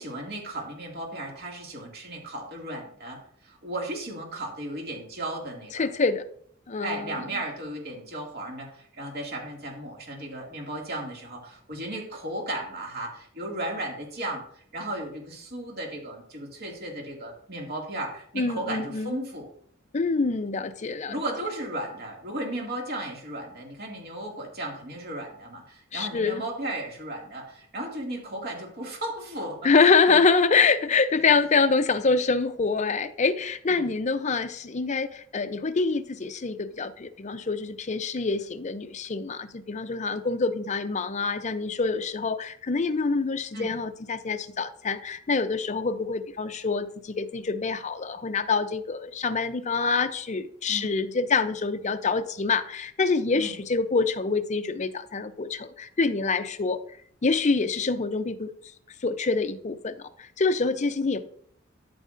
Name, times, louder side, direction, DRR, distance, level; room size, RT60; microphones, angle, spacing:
voice 1, 0.0-5.9 6.8-19.5 21.1-30.2 31.2-31.3 33.7-33.9 43.5-43.7 50.7-50.9 53.3-53.6, right 1 dB, 50° right, 2.3 m, -35 dB
voice 2, 5.7-6.2 6.7-7.2 18.4-19.1 19.9-21.2 25.9-26.4 29.6-56.8 57.2-58.5 59.0-61.3, left 4 dB, 35° left, 0.5 m, -26 dB
13.0 x 6.4 x 2.6 m
head